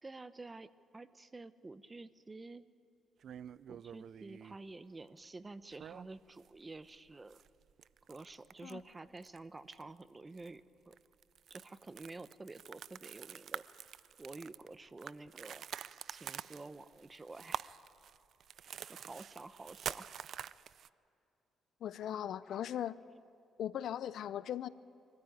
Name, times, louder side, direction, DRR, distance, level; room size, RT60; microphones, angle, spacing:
voice 1, 0.0-2.7 3.7-7.4 8.1-11.0 11.5-13.6 14.2-15.7 16.1-17.7 18.8-20.1, right 3 dB, 25° right, 14 dB, 0.8 m, -50 dB
sound 1, 3.2-4.6 5.7-6.5 6.8-6.9 7.3-8.8 9.2-9.4 9.7-10.0 10.4-10.5 10.9-20.9, right 9 dB, 65° right, 0.4 m, -47 dB
voice 2, 21.8-23.0 23.6-24.7, left 10 dB, 70° left, 17 dB, 0.5 m, -38 dB
24.5 x 14.5 x 9.2 m, 2.7 s
cardioid pair, 90°, 0 cm